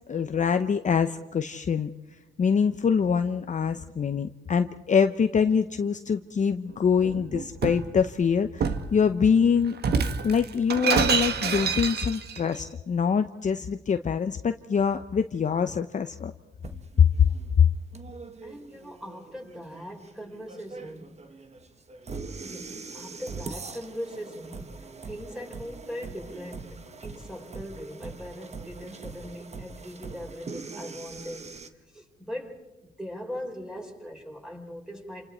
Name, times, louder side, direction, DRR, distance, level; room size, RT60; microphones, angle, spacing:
voice 1, 0.1-1.9 2.4-9.8 10.2-16.3 17.0-17.1 17.6-17.7, left 6 dB, 40° left, 8 dB, 0.8 m, -24 dB
Shatter, 7.0-7.9 8.6-8.9 9.8-12.4, right 6 dB, 55° right, 1.7 m, -26 dB
sound 1, 16.6-31.7, right 4 dB, 35° right, 1.5 m, -42 dB
voice 2, 18.4-21.2 22.4-31.5 31.9-35.3, equal, 5° right, 1 dB, 5.5 m, -40 dB
28.5 x 27.5 x 4.4 m, 1.1 s
cardioid pair, 90°, 20 cm